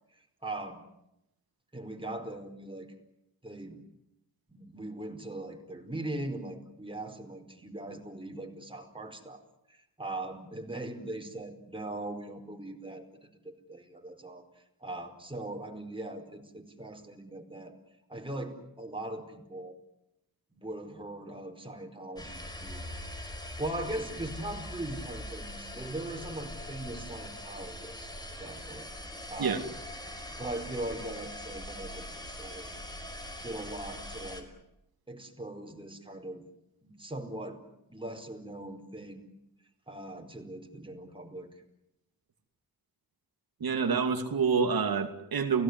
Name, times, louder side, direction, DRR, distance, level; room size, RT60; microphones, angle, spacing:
voice 1, 0.4-0.8 1.7-2.9 3.4-3.8 4.5-14.5 14.8-17.8 18.1-19.7 20.5-22.8 23.6-28.1 28.4-28.9 29.3-29.8 30.4-32.7 33.4-34.5 35.1-36.4 36.8-37.6 37.9-39.2 39.9-41.5, right 1 dB, 15° right, 4 dB, 4.7 m, -40 dB
sound 1, 22.2-34.4, left 1 dB, 10° left, 5.3 m, -42 dB
voice 2, 43.6-45.6, right 5 dB, 75° right, 5 dB, 2.8 m, -27 dB
30.0 x 17.5 x 9.7 m, 0.85 s
wide cardioid pair, 85°, 36 cm